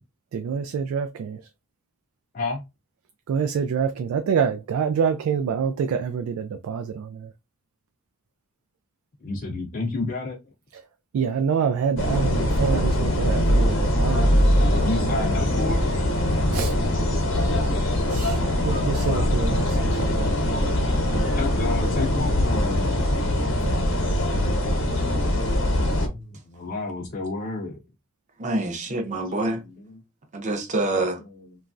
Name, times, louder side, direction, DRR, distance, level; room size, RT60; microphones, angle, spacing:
voice 1, 0.3-1.5 3.3-7.3 10.7-10.8 11.1-14.7 16.5-16.8 18.1-20.7 21.1-21.4 23.6-23.9, right 6 dB, 90° right, 0.3 m, -27 dB
voice 2, 9.2-10.5 14.8-15.8 21.4-23.0 25.8-27.8 29.1-29.2 29.5-30.0 30.9-31.0, left 3 dB, 40° left, 0.4 m, -31 dB
sound 1, 12.0-26.1, left 1 dB, 60° left, 0.8 m, -22 dB
sound 2, 14.3-19.6, left 2 dB, 65° right, 1.0 m, -45 dB
voice 3, 28.4-29.6 30.3-31.2, right 2 dB, 35° right, 0.6 m, -26 dB
2.9 x 2.3 x 2.4 m
head